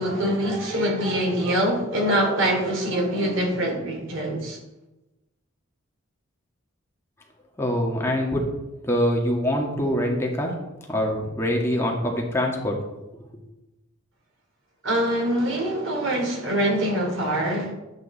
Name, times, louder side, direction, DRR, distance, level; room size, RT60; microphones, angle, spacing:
voice 1, 0.0-4.6 14.8-17.7, right 1 dB, 70° right, 3.0 m, -24 dB
voice 2, 7.6-8.4 8.8-10.5 10.9-12.8, equal, 15° left, 1.9 m, -24 dB
11.5 x 8.5 x 4.2 m
head